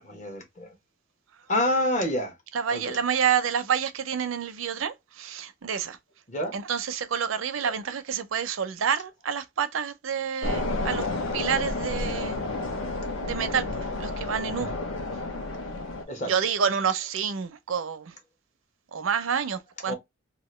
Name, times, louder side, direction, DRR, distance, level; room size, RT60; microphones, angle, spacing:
voice 1, 0.0-0.7 1.5-2.4 2.7-3.0 6.3-6.6 7.6-7.7 16.1-16.3 19.9-20.0, left 1 dB, 35° left, 1.0 m, -28 dB
voice 2, 2.5-6.0 6.5-11.1 11.3-12.4 13.2-14.7 16.3-18.1 18.9-19.9, right 7 dB, 85° right, 0.5 m, -28 dB
sound 1, 10.4-16.0, left 2 dB, 75° left, 0.7 m, -30 dB
2.8 x 2.5 x 3.1 m
head